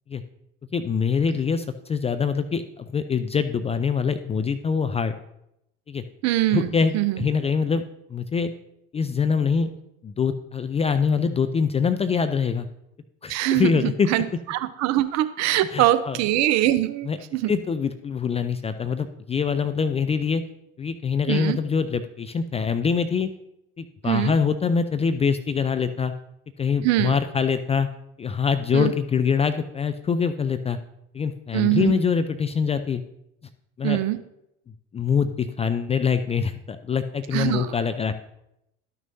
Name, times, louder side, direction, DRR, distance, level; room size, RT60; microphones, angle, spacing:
voice 1, 0.7-5.1 5.9-6.0 6.5-7.8 8.1-8.5 8.9-9.7 10.0-12.7 13.2-14.1 15.7-16.2 17.1-17.2 17.5-20.4 20.8-23.3 23.8-26.1 26.6-27.9 28.2-30.8 31.1-33.0 33.8-34.0 34.9-38.1, left 6 dB, 20° left, 9 dB, 0.4 m, -24 dB
voice 2, 6.2-7.3 13.3-17.5 21.3-21.6 24.0-24.3 26.8-27.2 28.7-28.9 31.5-31.9 33.8-34.2 37.3-37.7, right 15 dB, 50° right, 12 dB, 0.7 m, -23 dB
12.0 x 6.1 x 2.7 m, 0.81 s
hypercardioid pair, 70°, 36 cm